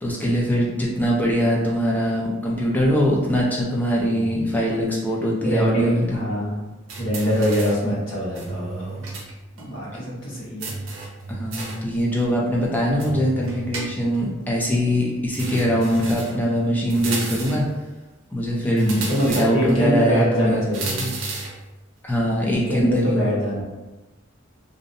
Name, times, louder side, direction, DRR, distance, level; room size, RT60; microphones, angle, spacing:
voice 1, 0.0-6.2 11.3-17.6 18.3-20.6 21.0-21.1 22.0-23.3, equal, 10° left, -4 dB, 0.4 m, -22 dB
voice 2, 4.1-4.5 5.4-6.7 7.0-9.0 9.6-10.7 18.6-21.2 22.4-23.6, equal, 80° left, -7 dB, 1.1 m, -24 dB
sound 1, 6.9-7.9 8.4-9.3 9.6-9.7 10.6-11.9 13.0-14.3 15.3-16.4 16.9-17.7 18.8-19.8 20.7-21.6, right 3 dB, 75° right, 0.6 m, -32 dB
2.6 x 2.1 x 2.5 m, 1.1 s
head